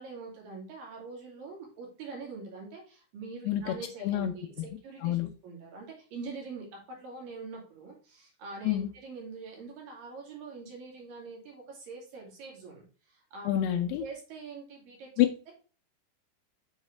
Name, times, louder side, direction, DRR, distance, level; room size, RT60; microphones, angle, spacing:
voice 1, 0.0-15.5, right 4 dB, 60° right, 3.7 m, -44 dB
voice 2, 3.5-3.8 4.0-4.3 5.0-5.3 8.6-8.9 13.5-14.0 15.2-15.3, left 12 dB, 80° left, 2.5 m, -27 dB
7.2 x 4.8 x 3.2 m
omnidirectional pair, 4.8 m